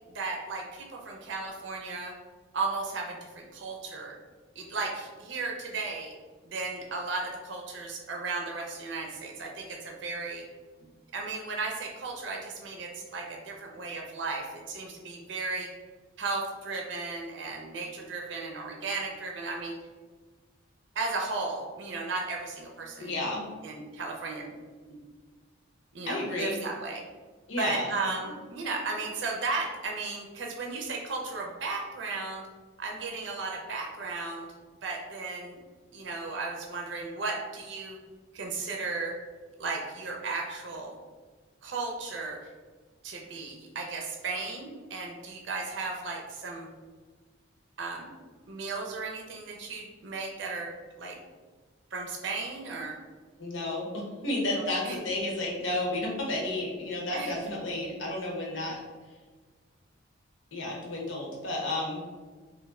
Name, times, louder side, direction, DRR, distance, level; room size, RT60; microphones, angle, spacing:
voice 1, 0.0-2.1 2.5-4.2 4.6-6.1 6.4-10.4 10.8-15.7 16.2-19.8 20.9-23.2 23.6-24.6 25.9-27.0 27.6-32.4 32.8-34.5 34.8-35.6 35.9-38.0 38.3-39.2 39.6-40.9 41.6-42.5 43.0-46.7 47.8-48.1 48.5-51.2 51.9-53.0 54.8-55.0 57.1-57.3 58.5-58.6, right 3 dB, 70° right, 0 dB, 0.6 m, -35 dB
voice 2, 23.0-23.4 26.1-26.5 27.5-27.9 53.4-58.8 60.5-62.0, left 2 dB, 80° left, -2 dB, 1.0 m, -32 dB
3.2 x 2.6 x 3.6 m, 1.4 s
head